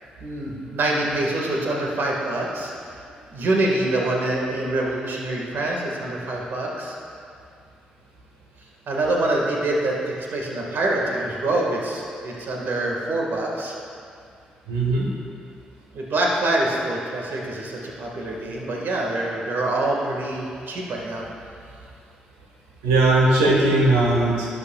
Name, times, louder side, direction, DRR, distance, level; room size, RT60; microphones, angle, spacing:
voice 1, 0.2-2.7 3.3-7.0 8.9-13.7 15.9-21.2, right 2 dB, 60° right, -2 dB, 1.8 m, -25 dB
voice 2, 14.7-15.1 22.8-24.5, right 2 dB, 80° right, -2 dB, 1.3 m, -18 dB
12.0 x 9.7 x 2.4 m, 2.3 s
hypercardioid pair, 40°, 4 cm